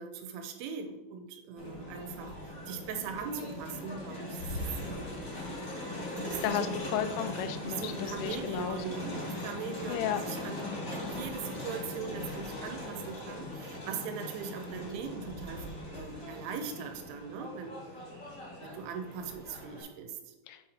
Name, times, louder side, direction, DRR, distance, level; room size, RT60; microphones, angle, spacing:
voice 1, 0.0-2.3 2.7-4.4 4.8-5.1 6.3-6.8 7.6-17.8 18.6-20.3, right 6 dB, 80° right, 5 dB, 3.2 m, -40 dB
Crowd, 1.6-19.8, left 1 dB, 35° left, 1.4 m, -40 dB
voice 2, 6.4-9.0 9.9-10.2 20.5-20.7, left 10 dB, 85° left, 10 dB, 3.0 m, -34 dB
8.8 x 4.1 x 4.2 m, 1.0 s
omnidirectional pair, 5.6 m